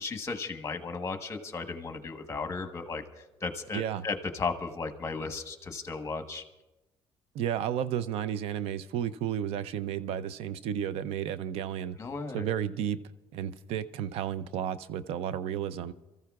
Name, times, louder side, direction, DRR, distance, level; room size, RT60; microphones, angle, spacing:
voice 1, 0.0-6.4 12.0-12.5, left 4 dB, 30° left, 7 dB, 1.2 m, -35 dB
voice 2, 7.3-12.0 12.3-13.0 13.3-15.9, right 9 dB, 80° right, 15 dB, 0.5 m, -32 dB
27.5 x 14.0 x 2.4 m, 1.0 s
cardioid pair, 120°, 10 cm